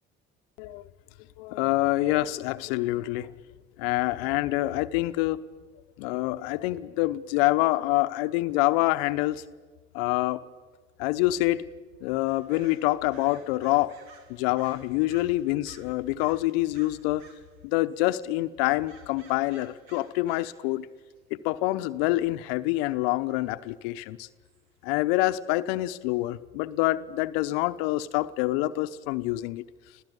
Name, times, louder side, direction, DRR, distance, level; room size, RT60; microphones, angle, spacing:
voice 1, 1.4-3.3 3.8-5.4 6.0-9.4 9.9-10.4 11.0-11.7 12.0-13.9 14.3-17.2 17.6-20.9 21.3-24.3 24.8-29.6, left 18 dB, 80° left, 13 dB, 0.9 m, -26 dB
sound 1, 12.3-17.6 17.9-18.3 18.9-20.7 21.0-21.1 22.8-23.0 23.7-23.8 24.4-24.7 25.5-25.6 25.8-25.9 26.2-26.3, right 5 dB, 80° right, 2.2 m, -55 dB
27.0 x 16.0 x 8.1 m, 1.4 s
hypercardioid pair, 60°, 30 cm